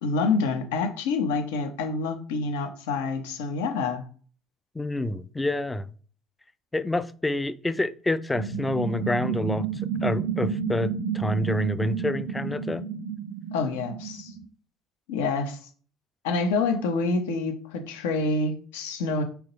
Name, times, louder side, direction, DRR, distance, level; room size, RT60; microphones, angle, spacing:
voice 1, 0.0-4.0 13.5-14.3 15.1-15.6 16.2-19.2, left 4 dB, 75° left, 0.7 m, -27 dB
voice 2, 4.7-5.9 6.7-9.7 10.0-12.8, left 2 dB, 15° left, 0.4 m, -27 dB
sound 1, 8.3-14.5, right 7 dB, 70° right, 0.3 m, -31 dB
3.6 x 2.9 x 4.0 m
hypercardioid pair, 60°, 0 cm